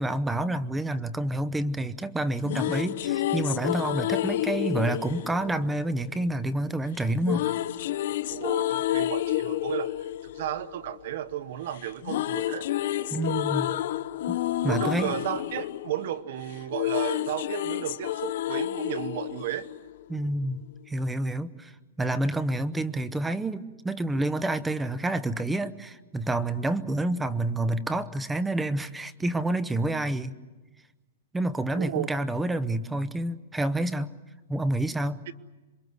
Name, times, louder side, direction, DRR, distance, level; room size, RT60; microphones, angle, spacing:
voice 1, 0.0-7.5 13.1-13.7 14.3-15.1 20.1-21.7 22.0-30.3 31.3-34.1 34.5-35.2, right 1 dB, 5° right, 14 dB, 0.8 m, -28 dB
sound 1, 2.2-6.4 7.2-11.5 11.7-20.3, left 13 dB, 55° left, 0.8 m, -30 dB
voice 2, 8.3-9.9 10.2-12.7 14.6-19.7 31.7-32.1 35.3-35.4, right 12 dB, 55° right, 14 dB, 1.0 m, -33 dB
27.5 x 23.5 x 8.0 m, 1.2 s
hypercardioid pair, 160°, 0 cm